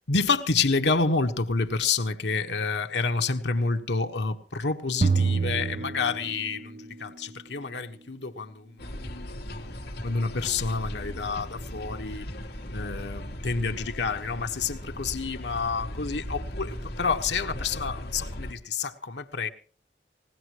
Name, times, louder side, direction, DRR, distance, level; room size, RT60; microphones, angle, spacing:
voice 1, 0.1-8.8 10.0-12.3 12.7-19.5, left 4 dB, 85° left, 1.4 m, -28 dB
sound 1, 5.0-6.8, right 4 dB, 40° right, 0.7 m, -26 dB
sound 2, 8.8-18.5, left 1 dB, 60° left, 2.0 m, -37 dB
20.5 x 18.0 x 3.1 m
head